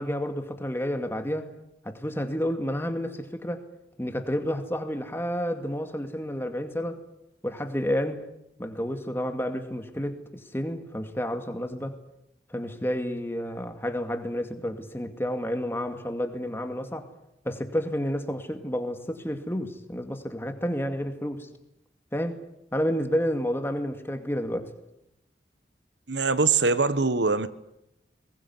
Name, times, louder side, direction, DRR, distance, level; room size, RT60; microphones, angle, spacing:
voice 1, 0.0-1.5 1.8-3.6 4.0-7.0 7.4-8.2 8.6-12.0 12.5-17.1 17.4-21.5 22.1-22.4 22.7-24.7, equal, 15° left, 7 dB, 2.3 m, -30 dB
voice 2, 26.1-27.5, right 4 dB, 85° right, 14 dB, 1.3 m, -23 dB
22.5 x 20.5 x 9.6 m, 0.84 s
head